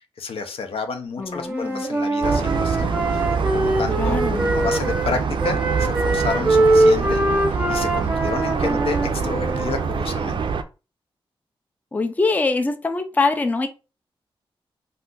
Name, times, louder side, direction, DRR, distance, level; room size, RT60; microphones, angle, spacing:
voice 1, 0.2-3.2 3.5-4.2 4.5-7.2 7.7-10.4, left 4 dB, 80° left, 0.5 m, -30 dB
voice 2, 1.2-1.8 4.0-4.5 11.9-13.7, left 3 dB, 15° left, 0.3 m, -23 dB
Wind instrument woodwind instrument, 1.4-5.1 5.4-9.8, right 1 dB, 15° right, 0.6 m, -22 dB
sound 1, 2.2-10.6, right 5 dB, 60° right, 0.4 m, -25 dB
2.5 x 2.3 x 3.7 m
wide cardioid pair, 125°, 10 cm